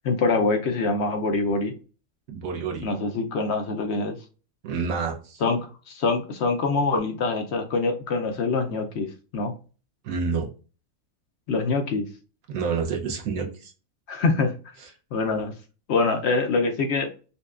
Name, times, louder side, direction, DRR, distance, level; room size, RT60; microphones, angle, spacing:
voice 1, 0.0-1.7 2.8-4.2 5.4-9.6 11.5-12.1 14.1-14.5 15.1-15.5 15.9-17.1, left 3 dB, 65° left, 5 dB, 0.7 m, -24 dB
voice 2, 2.3-2.9 4.6-5.4 10.0-10.5 12.5-13.7, right 5 dB, 85° right, 2 dB, 1.3 m, -28 dB
5.4 x 2.2 x 2.4 m, 0.35 s
omnidirectional pair, 1.4 m